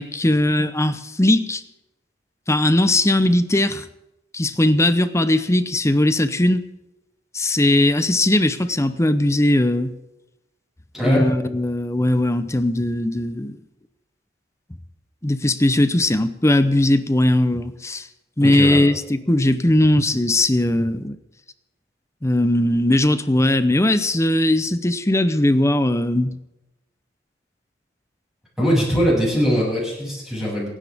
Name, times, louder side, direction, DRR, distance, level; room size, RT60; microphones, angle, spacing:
voice 1, 0.0-1.6 2.5-3.9 4.3-6.6 7.3-9.9 11.0-13.6 15.2-18.1 18.4-21.2 22.2-26.3, left 1 dB, 15° left, 12 dB, 0.8 m, -19 dB
voice 2, 10.9-11.3 18.4-18.8 28.6-30.7, equal, ahead, -6 dB, 7.3 m, -21 dB
29.5 x 10.0 x 3.6 m, 0.92 s
head